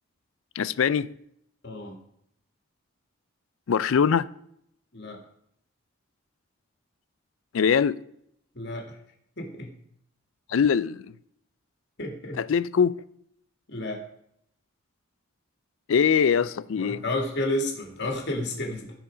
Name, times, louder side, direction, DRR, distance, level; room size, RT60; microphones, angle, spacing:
voice 1, 0.6-1.1 3.7-4.3 7.5-8.0 10.5-11.1 12.4-13.0 15.9-17.0, left 7 dB, 70° left, 0.4 m, -22 dB
voice 2, 1.6-2.0 4.9-5.2 8.5-9.0 9.4-9.7 12.0-12.4 13.7-14.0 16.8-18.9, left 1 dB, 55° left, 2.1 m, -31 dB
15.0 x 5.0 x 5.0 m
head